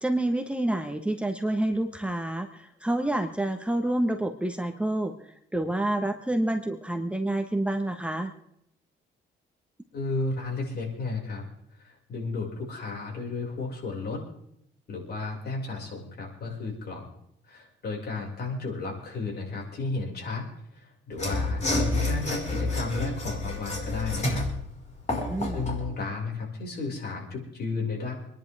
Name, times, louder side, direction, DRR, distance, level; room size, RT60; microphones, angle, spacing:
voice 1, 0.0-8.3 25.3-25.7, right 1 dB, 5° right, 5 dB, 1.4 m, -28 dB
voice 2, 9.9-11.5 11.8-14.2 14.9-17.1 17.5-20.4 20.7-24.5 25.5-28.1, left 3 dB, 55° left, -1 dB, 5.9 m, -33 dB
Mechanisms / Sawing, 21.1-25.9, left 2 dB, 35° left, 5.2 m, -29 dB
27.0 x 11.0 x 3.6 m, 0.75 s
cardioid pair, 90°, 20 cm